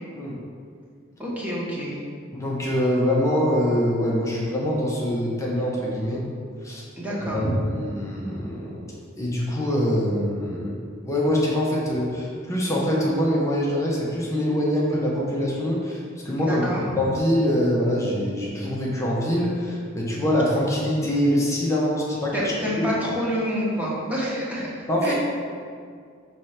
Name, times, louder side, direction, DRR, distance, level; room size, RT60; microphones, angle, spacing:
voice 1, 1.2-2.0 7.0-7.5 16.4-16.8 22.3-25.1, equal, 5° right, -6 dB, 1.2 m, -28 dB
voice 2, 2.3-6.2 6.6-6.8 7.1-7.5 7.7-8.9 9.2-10.8 11.0-16.0 16.2-16.6 17.0-22.4 24.9-25.1, equal, 15° left, -5 dB, 0.8 m, -24 dB
6.1 x 3.3 x 5.7 m, 2.2 s
head